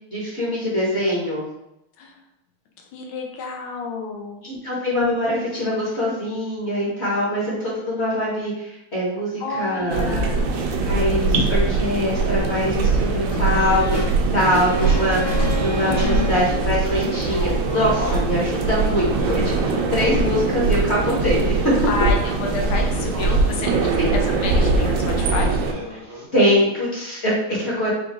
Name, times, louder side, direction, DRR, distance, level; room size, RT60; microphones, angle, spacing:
voice 1, 0.1-1.4 4.4-10.2 10.8-14.0 14.3-21.9 24.0-24.1 26.3-27.9, equal, 35° left, -6 dB, 1.3 m, -23 dB
voice 2, 2.9-4.5 9.4-10.5 15.9-16.4 21.9-25.5, left 4 dB, 75° left, 2 dB, 1.5 m, -29 dB
sound 1, 9.9-25.7, right 3 dB, 70° right, 1.2 m, -22 dB
sound 2, 13.3-14.1 14.4-16.1, equal, 60° left, 2.3 m, -33 dB
sound 3, 13.5-26.3, left 2 dB, 15° right, 0.9 m, -34 dB
4.6 x 2.6 x 3.6 m, 0.87 s
omnidirectional pair, 2.3 m